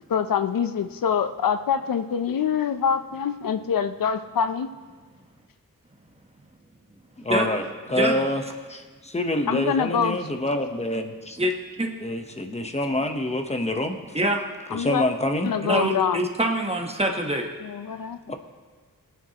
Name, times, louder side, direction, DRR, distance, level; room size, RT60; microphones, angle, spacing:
voice 1, 0.1-4.7 9.5-10.3 14.7-15.0 15.4-16.2 17.6-18.2, left 7 dB, 75° left, 10 dB, 0.6 m, -25 dB
voice 2, 7.2-7.6 7.9-8.4 8.7-11.4 12.0-14.0 14.7-15.5 18.3-18.4, left 1 dB, 20° left, 5 dB, 0.9 m, -26 dB
voice 3, 15.6-17.5, right 1 dB, 20° right, 2 dB, 1.1 m, -24 dB
23.0 x 9.3 x 2.9 m, 1.4 s
wide cardioid pair, 160°, 34 cm